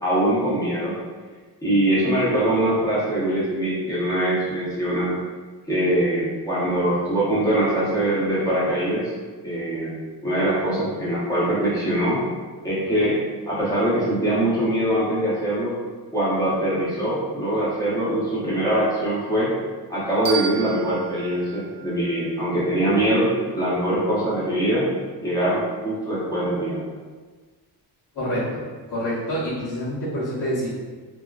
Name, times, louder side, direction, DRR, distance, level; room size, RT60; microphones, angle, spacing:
voice 1, 0.0-0.9 1.6-5.1 5.7-9.1 9.4-12.2 12.6-13.2 13.5-15.7 16.1-19.5 19.9-24.9 25.2-26.8, right 1 dB, 10° left, -9 dB, 0.8 m, -23 dB
sound 1, 20.2-23.0, right 7 dB, 15° right, 0.3 m, -34 dB
voice 2, 28.1-28.6 28.9-30.7, equal, 70° left, -12 dB, 1.0 m, -27 dB
2.7 x 2.4 x 2.3 m, 1.4 s
cardioid pair, 145°, 41 cm